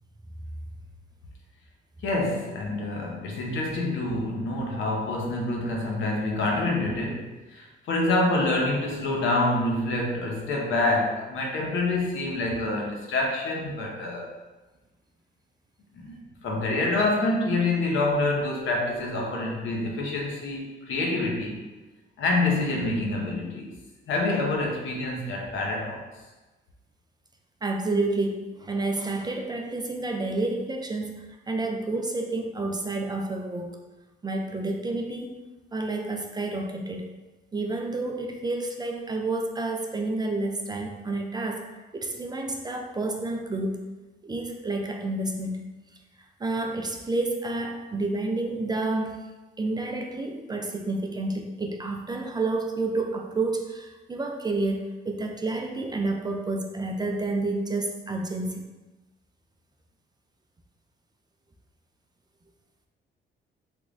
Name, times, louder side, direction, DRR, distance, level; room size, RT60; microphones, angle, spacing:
voice 1, 2.0-14.3 15.9-21.6 22.2-23.7 24.1-26.0, left 2 dB, 75° left, -1 dB, 0.8 m, -27 dB
voice 2, 27.6-31.1 31.5-33.8 34.2-35.4 35.7-37.1 37.5-41.7 41.9-43.8 44.2-45.7 46.4-49.2 49.6-58.6, right 2 dB, 20° right, 3 dB, 0.3 m, -29 dB
3.5 x 3.0 x 2.5 m, 1.1 s
cardioid pair, 90°, 20 cm